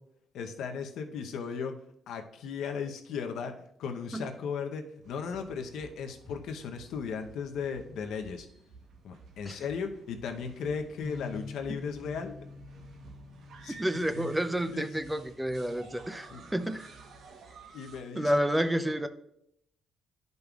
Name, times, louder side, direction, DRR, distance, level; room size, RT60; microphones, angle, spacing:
voice 1, 0.3-1.7 2.1-8.5 9.0-12.3 13.6-13.8 14.1-14.3 14.7-14.9 16.3-16.5 17.7-18.3, left 6 dB, 80° left, 0.8 m, -36 dB
sound 1, 5.0-18.0, right 4 dB, 70° right, 1.0 m, -53 dB
Bass guitar, 11.0-17.3, left 4 dB, 35° left, 0.8 m, -48 dB
voice 2, 13.8-16.9 18.1-19.1, equal, 10° right, 0.5 m, -30 dB
11.0 x 5.3 x 2.4 m
cardioid pair, 90°, 0 cm